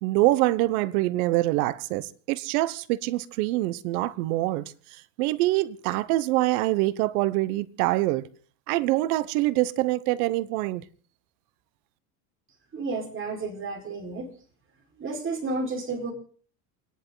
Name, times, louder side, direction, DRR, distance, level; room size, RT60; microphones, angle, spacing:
voice 1, 0.0-8.2 8.7-10.8, right 17 dB, 75° right, 1.1 m, -25 dB
voice 2, 12.7-14.3 15.0-16.1, right 3 dB, 25° right, 4.7 m, -31 dB
28.5 x 10.5 x 3.9 m
supercardioid pair, 120°, 45 cm